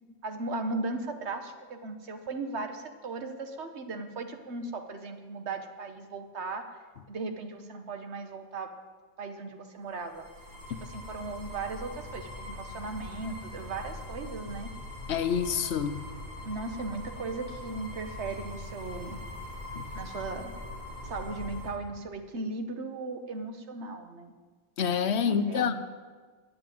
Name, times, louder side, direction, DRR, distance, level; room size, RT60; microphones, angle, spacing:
voice 1, 0.2-6.7 7.1-8.7 9.2-10.3 10.8-14.7 16.4-19.2 19.9-20.5 21.0-24.3 25.2-25.7, right 3 dB, 85° right, 6 dB, 1.4 m, -37 dB
sound 1, 9.9-21.7, left 2 dB, 45° right, 2.8 m, -42 dB
voice 2, 15.1-16.0 19.8-19.9 24.8-25.7, left 7 dB, 80° left, 11 dB, 1.0 m, -27 dB
9.9 x 8.0 x 9.2 m, 1.5 s
omnidirectional pair, 1.1 m